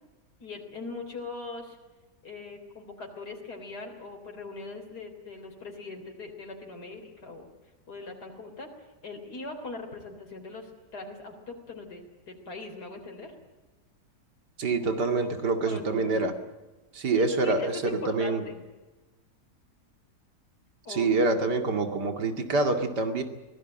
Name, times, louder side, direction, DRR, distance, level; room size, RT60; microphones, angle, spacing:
voice 1, 0.4-1.8 2.2-7.5 7.9-8.7 9.0-13.3 14.9-15.3 15.6-16.3 17.1-18.6 20.8-21.1, left 3 dB, 75° left, 2 dB, 4.1 m, -41 dB
voice 2, 14.6-16.3 16.9-18.4 20.9-23.2, right 3 dB, 85° right, 6 dB, 2.9 m, -26 dB
24.5 x 18.5 x 9.1 m, 1.2 s
omnidirectional pair, 1.8 m